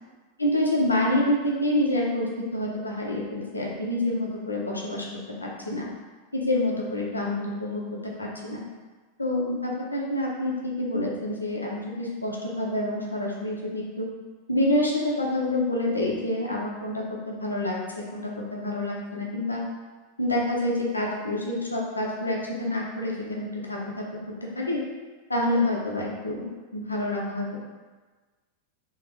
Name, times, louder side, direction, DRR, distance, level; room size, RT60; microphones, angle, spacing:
voice 1, 0.4-5.1 5.4-5.9 6.3-8.6 9.2-14.1 14.5-19.6 20.2-24.0 24.4-24.8 25.3-26.5 26.7-27.5, left 1 dB, 80° left, -2 dB, 0.8 m, -27 dB
3.6 x 3.1 x 4.7 m, 1.3 s
figure-of-eight pair, 90°, 0 cm